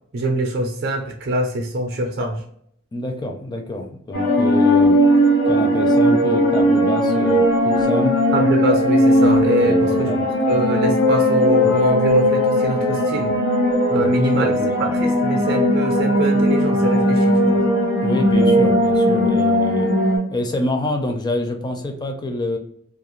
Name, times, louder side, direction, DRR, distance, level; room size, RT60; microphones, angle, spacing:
voice 1, 0.1-2.4 8.3-10.1 10.5-13.3 13.9-14.5 14.9-17.6, right 1 dB, 55° right, 3 dB, 0.4 m, -23 dB
voice 2, 2.9-5.0 5.5-8.2 9.6-10.3 14.0-15.0 18.0-19.9 20.3-22.6, left 2 dB, 20° left, 4 dB, 0.4 m, -26 dB
sound 1, 4.1-20.2, equal, 70° left, 1.3 m, -17 dB
2.4 x 2.2 x 3.0 m, 0.66 s
head